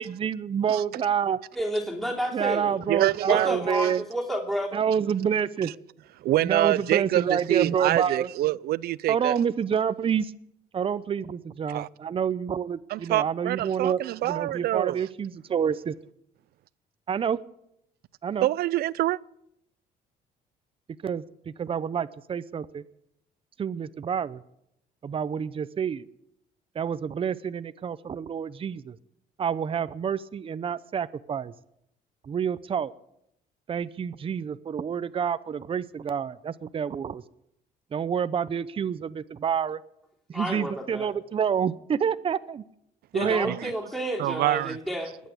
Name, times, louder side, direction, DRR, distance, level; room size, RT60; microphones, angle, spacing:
voice 1, 0.0-1.4 2.3-4.0 4.7-5.7 6.4-8.3 9.1-10.3 10.7-15.9 17.1-17.4 18.2-18.5 21.0-22.8 23.6-24.4 25.0-26.0 26.7-29.0 29.4-31.5 32.2-32.9 33.7-37.2 37.9-39.8 40.3-42.6 43.1-43.6, right 7 dB, 35° right, 0.7 m, -28 dB
voice 2, 1.5-2.8 3.3-4.8 40.3-41.1 43.1-45.1, equal, ahead, 3.2 m, -30 dB
voice 3, 2.9-3.5 6.2-9.4 11.7-11.9 12.9-15.0 18.4-19.2 43.2-43.7 44.2-44.8, right 15 dB, 65° right, 0.5 m, -26 dB
20.5 x 8.4 x 8.4 m
cardioid pair, 110°, 17 cm